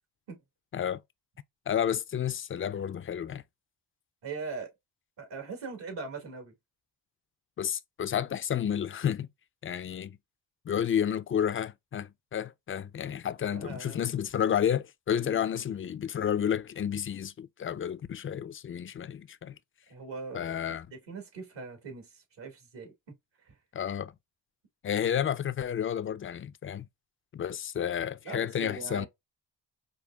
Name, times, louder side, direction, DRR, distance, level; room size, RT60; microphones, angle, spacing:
voice 1, 1.7-3.4 7.6-9.3 9.6-10.2 10.7-19.6 20.3-20.9 23.7-24.1 24.8-26.9 27.3-29.1, left 9 dB, 30° left, 0.3 m, -31 dB
voice 2, 4.2-4.7 5.2-6.5 13.5-14.0 15.2-15.4 19.9-22.9 23.4-23.6 28.2-29.1, right 4 dB, 70° right, 2.0 m, -41 dB
5.0 x 2.2 x 2.2 m
cardioid pair, 60°, 45 cm